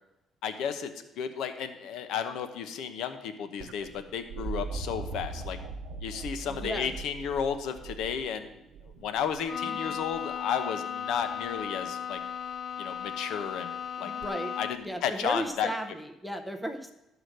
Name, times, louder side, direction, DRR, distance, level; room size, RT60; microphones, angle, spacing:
voice 1, 0.4-5.6 6.0-8.5 9.0-12.2 12.8-13.7 14.0-14.1 14.6-14.7 15.0-15.7, left 7 dB, 70° left, 9 dB, 0.9 m, -33 dB
sound 1, 3.6-9.5 11.1-11.6 14.2-14.3, right 4 dB, 60° right, 0.7 m, -40 dB
voice 2, 6.4-6.9 9.6-10.0 14.0-14.5 14.8-16.9, right 1 dB, ahead, 6 dB, 0.7 m, -35 dB
Bowed string instrument, 9.5-15.0, left 8 dB, 40° left, 0.5 m, -36 dB
12.5 x 4.9 x 6.4 m, 0.91 s
cardioid pair, 170°, 0 cm